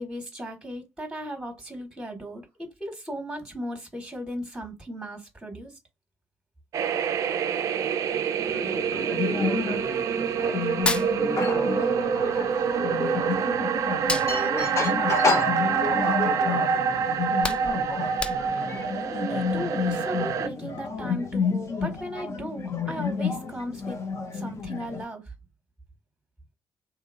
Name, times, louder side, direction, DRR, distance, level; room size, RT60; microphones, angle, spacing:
voice 1, 0.0-5.8 19.1-24.0 24.3-25.3, equal, 10° right, 1.2 m, -36 dB
sound 1, 6.7-20.5, right 7 dB, 50° right, 0.4 m, -26 dB
voice 2, 8.4-10.0 10.4-10.7 11.2-13.6 14.2-16.9, left 2 dB, 75° left, 1.3 m, -37 dB
sound 2, 8.4-25.0, left 5 dB, 40° left, 0.8 m, -30 dB
Hands, 10.6-11.9 12.2-13.5 13.9-16.2 16.6-16.8 17.1-18.8, left 2 dB, 15° left, 0.4 m, -32 dB
2.8 x 2.8 x 2.4 m
figure-of-eight pair, 45°, 7 cm